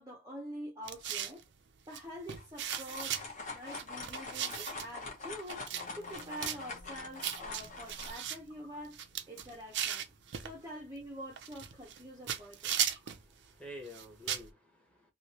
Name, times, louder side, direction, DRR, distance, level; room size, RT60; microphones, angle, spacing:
voice 1, 0.0-1.4 1.9-5.7 5.9-10.0 10.4-12.8, equal, 15° right, 0.7 m, -46 dB
sound 1, 0.8-1.4 1.9-2.0 2.3-3.2 3.7-4.9 5.5-5.8 6.1-6.6 7.2-8.4 8.8-10.5 11.4-12.0 12.3-13.2 13.9-14.5, right 9 dB, 55° right, 0.5 m, -36 dB
sound 2, 2.3-8.1, left 3 dB, 35° left, 1.0 m, -44 dB
Bass guitar, 5.7-9.8, left 5 dB, 65° left, 1.2 m, -61 dB
voice 2, 13.0-15.1, equal, 5° left, 1.1 m, -50 dB
3.1 x 2.8 x 2.8 m
head